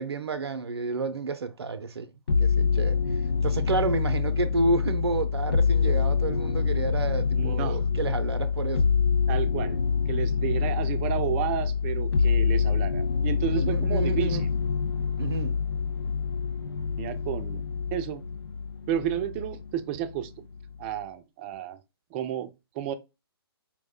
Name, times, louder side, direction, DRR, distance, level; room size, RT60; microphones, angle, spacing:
voice 1, 0.0-2.1 2.4-3.0 3.4-8.9 13.5-14.4 15.2-15.5, right 3 dB, 85° right, 0.5 m, -30 dB
sound 1, 2.3-19.7 20.0-20.8, left 5 dB, 85° left, 0.4 m, -26 dB
voice 2, 7.4-7.8 9.3-9.8 10.1-14.4 17.0-17.6 17.9-18.2 18.9-20.3 20.8-21.8 22.1-22.9, right 11 dB, 25° right, 0.4 m, -31 dB
4.6 x 2.1 x 3.5 m
hypercardioid pair, 140°, 13 cm